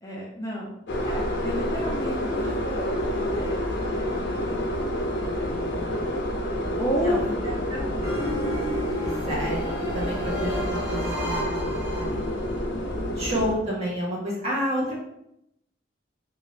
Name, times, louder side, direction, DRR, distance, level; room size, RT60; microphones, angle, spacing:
voice 1, 0.0-0.7 1.0-3.6 3.9-4.6 5.3-6.3 6.8-7.2 13.3-13.4, equal, 20° left, -4 dB, 0.5 m, -32 dB
sound 1, 0.9-13.5, left 1 dB, 80° left, 0.6 m, -28 dB
voice 2, 7.0-7.3 7.7-8.6 9.3-12.3 13.2-14.9, equal, 35° right, -5 dB, 1.1 m, -30 dB
sound 2, 8.0-12.7, equal, 15° right, 1.2 m, -33 dB
2.7 x 2.4 x 3.2 m, 0.78 s
head